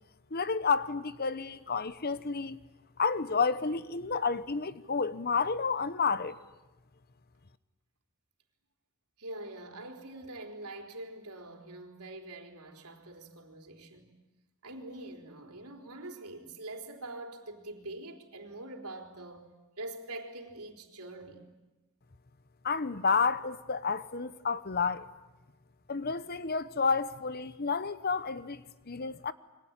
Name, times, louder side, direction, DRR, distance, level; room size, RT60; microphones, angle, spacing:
voice 1, 0.3-2.6 3.0-6.4 22.6-25.1 25.9-29.3, left 5 dB, 45° left, 0.9 m, -30 dB
voice 2, 9.2-14.1 14.6-19.5 19.8-21.5, right 2 dB, 90° right, 3.9 m, -44 dB
28.5 x 23.5 x 8.9 m
head